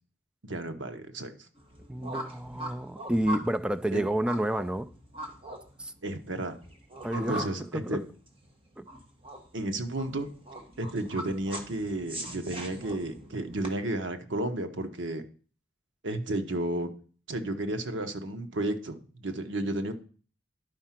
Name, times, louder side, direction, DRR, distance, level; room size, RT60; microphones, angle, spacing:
voice 1, 0.4-1.3 3.9-4.1 6.0-6.6 7.1-8.0 9.5-10.3 10.8-15.2 16.0-16.9 17.3-19.9, right 1 dB, 90° right, 1.1 m, -32 dB
sound 1, 1.6-13.7, right 1 dB, 30° right, 1.6 m, -41 dB
voice 2, 1.9-4.9 5.8-5.9 7.0-8.1 8.8-8.9, right 1 dB, 5° right, 0.4 m, -30 dB
10.5 x 4.8 x 5.8 m
head